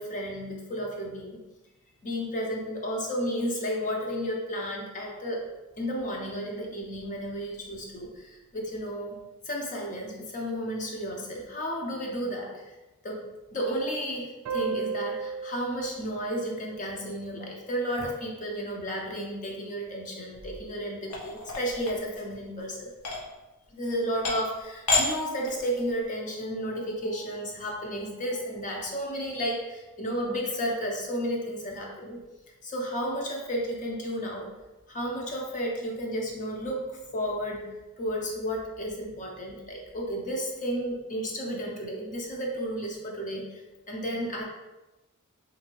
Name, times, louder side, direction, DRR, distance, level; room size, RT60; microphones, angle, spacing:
voice 1, 0.0-1.4 2.0-5.5 5.8-9.2 9.4-12.7 13.0-13.3 13.5-22.9 23.7-32.2 32.6-34.5 34.9-37.7 38.0-43.6 43.9-44.4, equal, 35° left, -1 dB, 0.6 m, -32 dB
sound 1, 14.5-17.6, right 5 dB, 90° right, 0.4 m, -36 dB
sound 2, 21.1-22.3 23.0-23.2 23.9-24.0 24.3-24.6 24.9-25.1 25.4-25.9, left 3 dB, 90° left, 0.7 m, -28 dB
3.2 x 2.7 x 3.0 m, 1.1 s
head